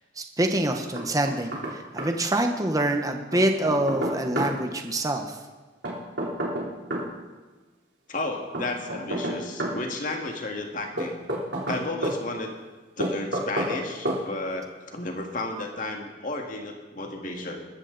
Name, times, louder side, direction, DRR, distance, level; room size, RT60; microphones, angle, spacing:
voice 1, 0.2-5.4, right 1 dB, 20° right, 5 dB, 1.0 m, -26 dB
Knock, 1.0-1.7 2.0-2.1 3.3-4.5 5.8-7.1 8.5-9.8 11.0-12.2 13.0-13.8 14.1-14.2, right 1 dB, 85° right, 3.4 m, -29 dB
voice 2, 8.1-11.2 11.7-12.5 13.0-17.7, left 2 dB, 50° left, 2 dB, 2.0 m, -33 dB
20.5 x 13.5 x 4.0 m, 1.3 s
head